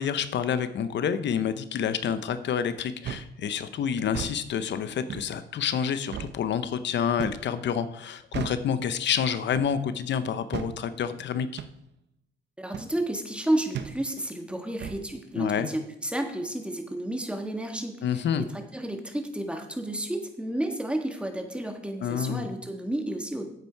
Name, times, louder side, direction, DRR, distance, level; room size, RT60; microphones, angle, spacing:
voice 1, 0.0-11.6 15.4-15.7 18.0-18.5 22.0-22.5, left 8 dB, 65° left, 12 dB, 0.8 m, -28 dB
sound 1, 3.0-3.3 4.0-4.4 5.1-5.3 6.1-6.4 7.2-7.5 8.3-8.7 9.5-9.8 10.5-10.8 11.6-11.8 12.7-12.9 13.7-14.0 14.8-15.0, right 9 dB, 60° right, 0.8 m, -35 dB
voice 2, 12.6-18.2 18.5-23.5, right 1 dB, 5° right, 4 dB, 1.7 m, -31 dB
9.2 x 8.3 x 4.6 m, 0.78 s
cardioid pair, 90°, 20 cm